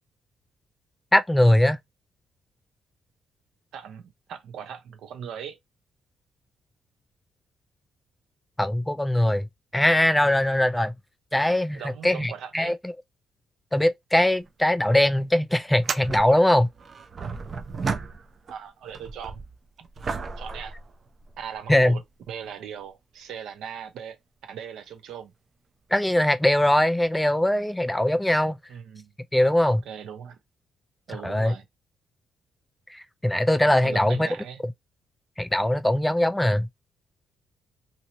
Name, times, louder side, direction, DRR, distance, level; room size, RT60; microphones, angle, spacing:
voice 1, 1.1-1.8 8.6-9.5 9.7-10.9 11.3-12.9 13.7-16.7 21.7-22.0 25.9-28.6 29.3-29.8 31.2-31.5 32.9-34.3 35.4-36.7, left 1 dB, 5° left, 0.3 m, -21 dB
voice 2, 3.7-4.0 4.3-5.6 10.7-10.8 11.7-12.7 18.5-19.4 20.4-20.8 21.4-25.3 28.7-29.1 29.6-30.4 31.1-31.6 33.8-34.6, right 8 dB, 80° right, 0.7 m, -39 dB
sound 1, 14.3-14.5 14.8-14.9 15.7-18.6 18.9-21.6 22.3-22.4 26.5-26.6 28.0-28.1, right 4 dB, 45° right, 0.6 m, -34 dB
2.9 x 2.7 x 2.8 m
cardioid pair, 90°, 0 cm